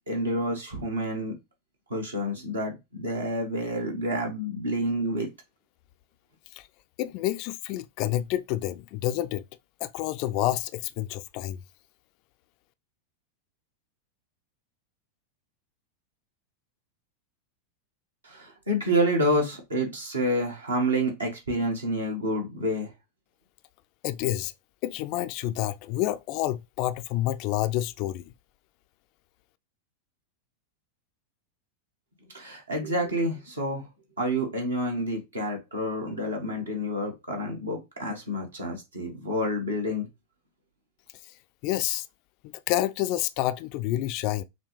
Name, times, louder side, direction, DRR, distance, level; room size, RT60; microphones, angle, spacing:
voice 1, 0.1-1.3 1.9-5.3 18.2-22.9 32.3-33.9 34.2-40.1, equal, 75° right, 1.4 m, -28 dB
voice 2, 7.0-9.4 9.8-11.6 24.0-24.5 24.8-28.3 41.6-42.1 42.7-44.4, left 14 dB, 45° left, 0.3 m, -28 dB
5.8 x 2.2 x 3.2 m
figure-of-eight pair, 90°, 0 cm